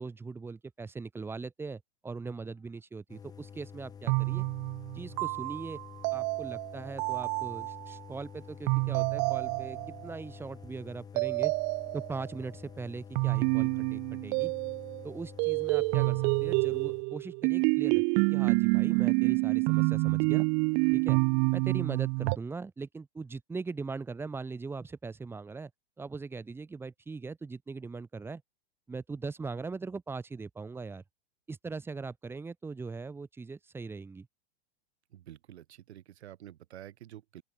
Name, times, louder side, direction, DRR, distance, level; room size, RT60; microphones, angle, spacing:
voice 1, 0.0-4.4 4.9-5.8 6.1-11.5 11.9-14.5 15.0-20.5 20.9-21.2 21.5-25.7 26.0-28.4 28.9-31.0 31.5-34.3, right 4 dB, 5° right, 6.6 m, -40 dB
sound 1, 3.1-17.0, left 7 dB, 10° left, 5.9 m, -49 dB
sound 2, 4.1-8.0 8.7-10.1 11.2-12.3 13.2-15.1 15.4-22.4, right 40 dB or more, 30° right, 1.5 m, -28 dB
voice 2, 35.1-37.4, right 12 dB, 90° right, 3.3 m, -49 dB
open air
supercardioid pair, 175°, 32 cm